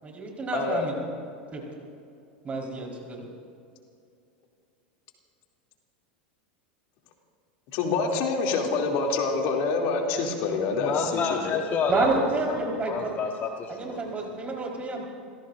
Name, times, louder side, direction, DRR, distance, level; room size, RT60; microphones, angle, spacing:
voice 1, 0.0-0.9 1.5-1.6 2.4-3.2 11.9-13.1 13.7-15.1, right 3 dB, 25° right, -1 dB, 4.3 m, -29 dB
voice 2, 0.5-0.9 7.7-11.4, left 4 dB, 60° left, 0 dB, 2.8 m, -26 dB
voice 3, 10.8-12.1 12.5-14.0, left 6 dB, 35° left, 3 dB, 1.2 m, -29 dB
29.5 x 16.5 x 2.6 m, 2.5 s
hypercardioid pair, 100°, 5 cm